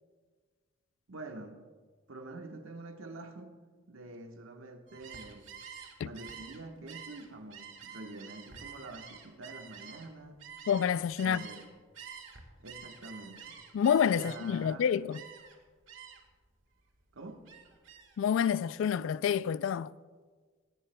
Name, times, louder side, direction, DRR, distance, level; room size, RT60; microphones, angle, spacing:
voice 1, 1.1-1.6 2.1-3.5 3.9-5.5 6.0-10.4 11.2-11.6 12.6-13.6 14.1-14.9 17.1-17.4, right 2 dB, 85° right, 1.2 m, -46 dB
Gull seagull, 4.9-11.7 11.9-14.7 15.1-15.6 15.9-16.3 16.7-18.2, right 7 dB, 65° right, 1.6 m, -49 dB
voice 2, 10.7-11.4 13.7-15.2 18.2-19.9, left 8 dB, 70° left, 0.3 m, -28 dB
18.0 x 16.0 x 2.2 m
head